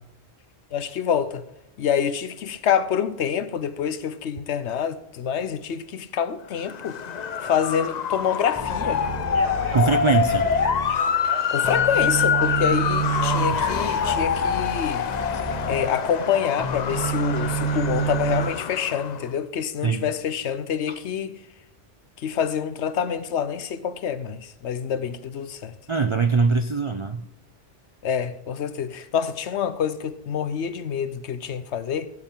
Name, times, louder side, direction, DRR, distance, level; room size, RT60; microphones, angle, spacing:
voice 1, 0.7-1.4 1.8-7.0 7.4-9.0 11.2-15.1 15.7-21.4 22.2-25.7 28.0-32.1, left 8 dB, 75° left, 1.0 m, -27 dB
Motor vehicle (road) / Siren, 6.6-19.3, left 7 dB, 50° left, 0.6 m, -26 dB
sound 1, 8.5-11.3 11.6-16.3 16.6-18.4, right 5 dB, 20° left, 1.6 m, -30 dB
Speech, 9.2-14.6, right 3 dB, 85° right, 2.0 m, -37 dB
voice 2, 9.7-10.5 19.8-20.1 20.9-21.0 25.9-27.2, right 4 dB, 55° right, 0.3 m, -22 dB
14.5 x 7.8 x 3.7 m
omnidirectional pair, 1.2 m